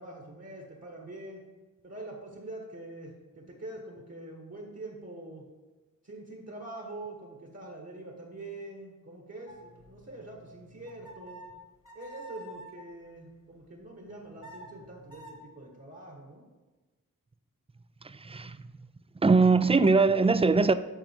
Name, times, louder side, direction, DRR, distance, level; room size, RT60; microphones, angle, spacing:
voice 1, 0.0-1.5 1.8-5.5 6.0-11.4 11.9-16.5, right 2 dB, 45° right, 1.6 m, -44 dB
sound 1, 9.5-12.9 14.1-15.4, right 1 dB, 60° left, 1.5 m, -49 dB
voice 2, 18.2-18.6 19.2-20.7, right 4 dB, 20° right, 0.3 m, -21 dB
9.0 x 6.2 x 4.6 m
wide cardioid pair, 70°, 35 cm